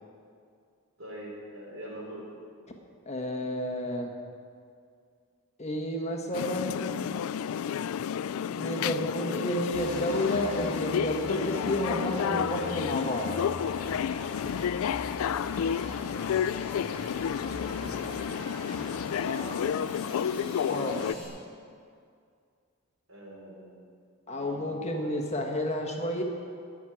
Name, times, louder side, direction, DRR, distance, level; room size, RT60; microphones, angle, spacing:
voice 1, 1.0-2.3 17.6-18.4 18.9-19.7 23.1-23.9 24.2-25.1, equal, 65° right, -5 dB, 4.1 m, -44 dB
voice 2, 3.0-4.1 5.6-6.9 8.5-13.3 20.7-21.0 24.3-26.2, left 1 dB, 30° left, 2 dB, 1.5 m, -31 dB
sound 1, 6.3-21.1, left 8 dB, 75° left, 0.3 m, -31 dB
sound 2, 9.7-21.3, equal, 5° left, 4.2 m, -42 dB
15.5 x 6.3 x 10.0 m, 2.3 s
head